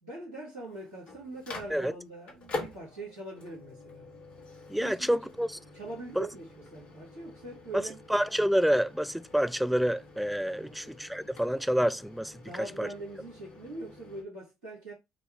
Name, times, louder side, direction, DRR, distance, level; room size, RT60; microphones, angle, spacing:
voice 1, 0.0-4.1 4.8-5.2 5.7-8.0 10.6-10.9 12.4-14.9, right 2 dB, 90° right, 2.2 m, -43 dB
Microwave oven, 0.6-14.2, left 2 dB, 55° left, 1.4 m, -46 dB
voice 2, 4.7-5.5 6.2-6.3 7.7-12.9, equal, ahead, 0.3 m, -28 dB
4.9 x 2.3 x 3.4 m
figure-of-eight pair, 50°, 2 cm